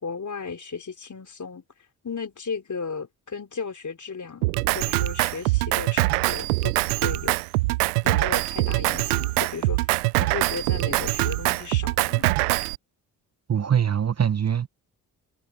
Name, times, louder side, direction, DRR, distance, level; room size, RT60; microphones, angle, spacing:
voice 1, 0.0-1.6 2.0-4.5 4.7-6.7 7.0-7.4 8.0-12.3, left 5 dB, 40° left, 4.1 m, -35 dB
Drum kit, 4.4-12.8, right 23 dB, 90° right, 0.5 m, -23 dB
voice 2, 13.5-14.7, right 8 dB, 35° right, 1.0 m, -23 dB
hypercardioid pair, 40°, 44 cm